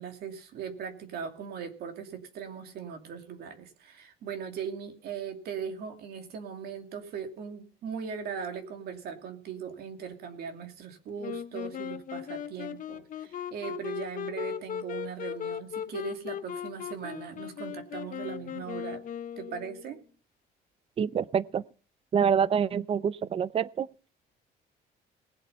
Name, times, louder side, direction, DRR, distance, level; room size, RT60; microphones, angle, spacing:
voice 1, 0.0-19.0 19.4-20.0, right 7 dB, 70° right, 2.6 m, -39 dB
Wind instrument woodwind instrument, 11.2-19.9, left 9 dB, 50° left, 1.3 m, -38 dB
voice 2, 21.0-21.6 22.1-23.9, right 7 dB, 35° right, 0.6 m, -26 dB
19.5 x 7.9 x 5.5 m
cardioid pair, 110°, 17 cm